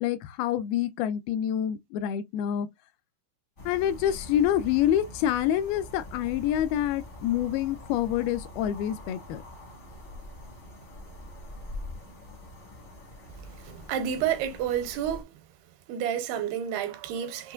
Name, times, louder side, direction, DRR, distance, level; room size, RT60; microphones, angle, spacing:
voice 1, 0.0-2.7 3.7-9.4, left 11 dB, 80° left, 2.4 m, -27 dB
sound 1, 3.6-15.2, left 1 dB, 45° left, 0.8 m, -44 dB
voice 2, 13.6-15.3 15.9-17.5, right 9 dB, 85° right, 2.9 m, -30 dB
6.7 x 2.9 x 2.4 m
omnidirectional pair, 4.5 m